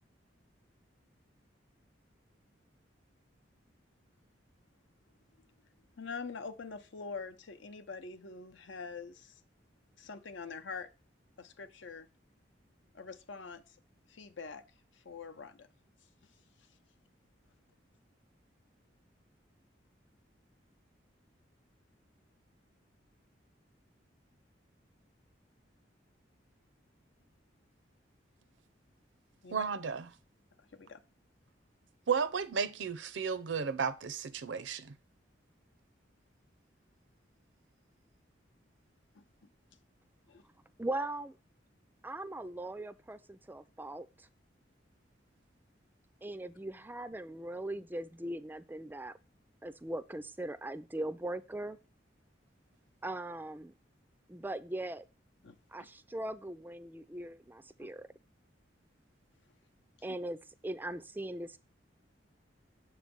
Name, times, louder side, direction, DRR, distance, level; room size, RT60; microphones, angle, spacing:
voice 1, 6.0-9.3 10.0-10.9 11.4-12.1 12.9-13.8 14.1-14.6 14.9-15.7 29.4-29.6 30.7-31.0 39.2-39.3 40.3-40.4 55.4-55.6 57.8-57.9, left 4 dB, 80° left, 0.7 m, -44 dB
voice 2, 29.5-30.1 32.1-34.9, right 6 dB, 80° right, 0.6 m, -33 dB
voice 3, 40.8-41.4 42.0-44.3 46.2-49.2 49.6-51.8 53.0-53.7 54.3-55.0 55.7-58.1 60.0-60.4 60.6-61.6, right 1 dB, 10° right, 0.3 m, -40 dB
7.0 x 3.2 x 5.2 m
head